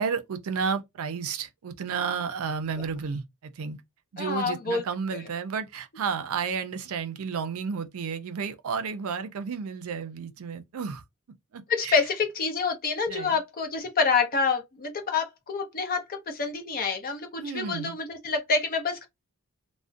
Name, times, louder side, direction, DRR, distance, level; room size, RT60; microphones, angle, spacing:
voice 1, 0.0-3.8 4.1-11.0 11.5-12.0 13.1-13.4 17.4-18.0, right 6 dB, 65° right, 0.4 m, -32 dB
voice 2, 4.2-4.8 11.7-16.0 16.3-19.1, left 4 dB, 40° left, 0.6 m, -27 dB
2.4 x 2.1 x 2.4 m
head